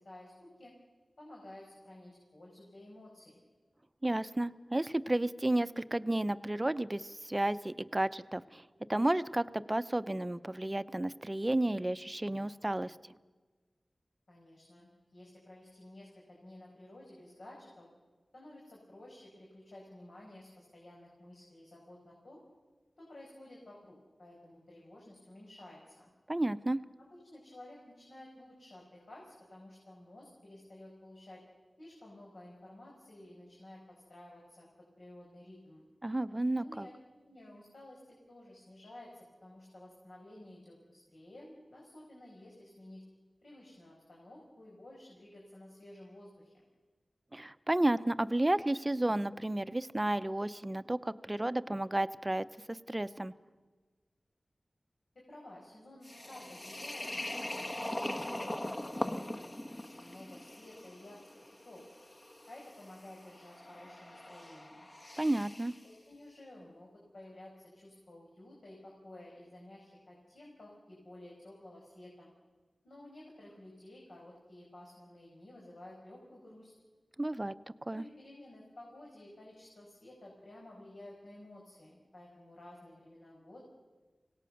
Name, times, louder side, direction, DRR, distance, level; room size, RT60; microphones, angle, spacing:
voice 1, 0.0-0.7 1.2-3.4 14.3-17.9 18.3-22.4 23.0-26.1 27.0-31.4 31.8-34.7 35.0-35.8 36.6-36.9 37.2-43.0 43.4-46.6 55.1-59.3 59.7-61.2 61.6-61.8 62.5-64.9 65.8-72.3 72.8-76.7 77.9-83.6, left 1 dB, 75° left, -3 dB, 5.4 m, -53 dB
voice 2, 4.0-8.6 8.9-13.0 26.3-26.8 36.0-36.9 47.3-53.3 65.2-65.7 77.2-77.5 77.9-78.0, right 1 dB, 20° right, 14 dB, 0.7 m, -32 dB
sound 1, 56.0-65.8, left 1 dB, 30° left, 1.2 m, -41 dB
25.5 x 18.0 x 6.6 m, 1.3 s
wide cardioid pair, 75°, 0 cm